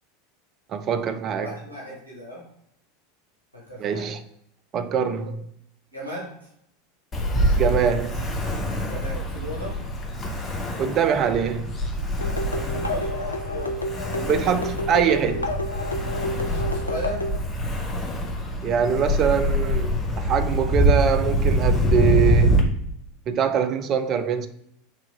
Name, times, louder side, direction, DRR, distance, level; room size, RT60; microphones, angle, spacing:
voice 1, 0.7-1.5 3.8-4.2 4.7-5.5 7.6-8.3 10.8-11.8 14.1-15.5 18.6-22.6 23.3-24.5, right 7 dB, 35° right, 0.4 m, -23 dB
voice 2, 1.4-2.4 3.5-4.1 5.9-6.5 8.9-9.8 12.5-13.8 16.2-17.3, equal, 85° right, 1.1 m, -37 dB
Ocean, 7.1-22.6, equal, 25° left, 0.7 m, -25 dB
sound 1, 12.2-17.4, left 1 dB, 85° left, 0.3 m, -30 dB
3.7 x 2.9 x 3.2 m
figure-of-eight pair, 80°, 0 cm